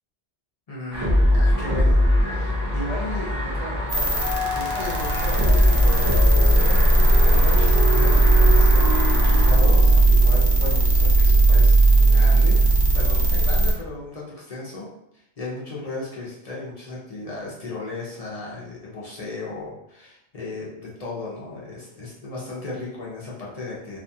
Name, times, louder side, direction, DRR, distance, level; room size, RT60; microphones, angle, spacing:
voice 1, 0.7-14.9 15.1-24.0, left 2 dB, 45° left, -6 dB, 0.5 m, -35 dB
sound 1, 0.9-9.5, left 1 dB, 20° right, 0.6 m, -22 dB
sound 2, 1.2-10.0, left 4 dB, 80° left, 0.9 m, -33 dB
sound 3, 3.9-13.7, right 2 dB, 70° right, 0.8 m, -17 dB
2.5 x 2.2 x 2.6 m, 0.82 s
omnidirectional pair, 1.2 m